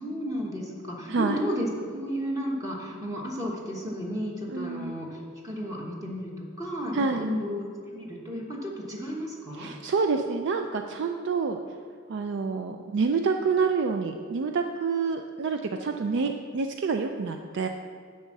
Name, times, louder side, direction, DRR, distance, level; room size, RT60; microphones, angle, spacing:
voice 1, 0.0-9.7, equal, 15° right, -3 dB, 1.1 m, -33 dB
voice 2, 4.5-5.0 6.9-7.3 9.6-11.6 12.1-17.7, right 4 dB, 60° right, 5 dB, 0.4 m, -27 dB
10.5 x 3.6 x 7.2 m, 2.1 s
head